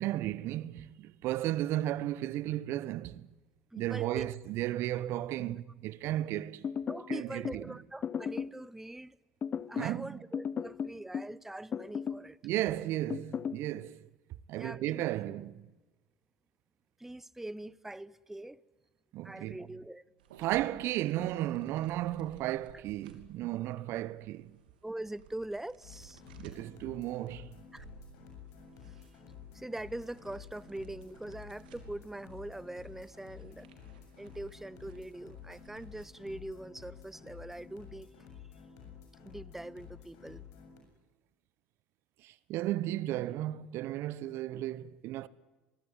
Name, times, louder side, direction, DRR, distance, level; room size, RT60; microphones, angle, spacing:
voice 1, 0.0-3.3 3.7-6.7 7.1-7.8 9.8-10.2 12.4-14.1 14.5-15.7 19.1-19.6 20.4-24.6 26.3-27.6 42.2-45.3, right 14 dB, 55° right, 0.9 m, -34 dB
voice 2, 3.7-4.3 5.4-5.6 6.0-6.2 6.9-9.2 9.7-12.4 14.6-15.0 17.0-18.6 19.2-20.0 24.8-26.2 27.7-27.8 29.5-33.7 34.2-38.1 39.2-40.4, right 1 dB, 5° right, 0.8 m, -43 dB
sound 1, 6.6-7.6 8.0-8.6 9.4-10.0 10.3-11.4 11.7-12.3 13.1-13.6, left 7 dB, 35° left, 0.9 m, -35 dB
sound 2, 20.2-36.0, right 7 dB, 80° right, 3.0 m, -59 dB
sound 3, 25.8-40.8, left 8 dB, 65° left, 7.4 m, -52 dB
24.5 x 21.5 x 9.7 m
hypercardioid pair, 65°, 5 cm